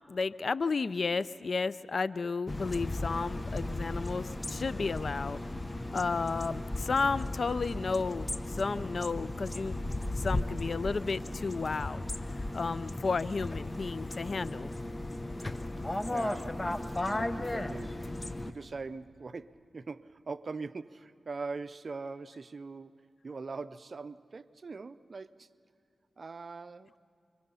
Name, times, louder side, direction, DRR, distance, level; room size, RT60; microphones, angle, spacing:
voice 1, 0.1-5.4 5.9-12.0 12.5-14.7, left 4 dB, 60° left, 17 dB, 0.5 m, -33 dB
sound 1, 2.5-18.5, left 2 dB, 25° left, 0.9 m, -36 dB
voice 2, 16.1-25.5 26.2-27.0, right 4 dB, 55° right, 14 dB, 0.6 m, -42 dB
30.0 x 23.5 x 5.6 m, 2.7 s
cardioid pair, 55°, 0 cm